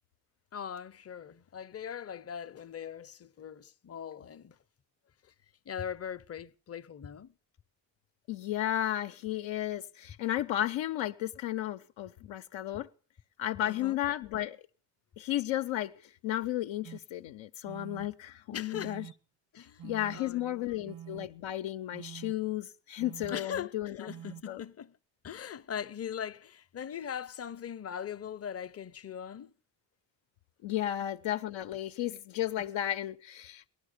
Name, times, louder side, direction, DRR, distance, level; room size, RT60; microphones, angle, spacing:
voice 1, 0.5-4.6 5.7-7.3 13.6-14.0 18.5-19.0 19.5-19.8 20.1-20.9 23.3-25.0 25.2-29.5, left 8 dB, 30° left, 0.7 m, -40 dB
voice 2, 8.3-12.9 13.4-14.6 15.2-19.1 19.5-24.1 24.5-24.6 30.6-33.7, left 13 dB, 75° left, 0.7 m, -34 dB
sound 1, 16.8-17.0 17.7-18.1 18.7-19.1 19.8-20.2 20.9-21.3 21.9-22.3 23.0-23.4 24.1-24.4, right 10 dB, 80° right, 1.2 m, -46 dB
18.0 x 12.0 x 6.6 m
cardioid pair, 85°, 46 cm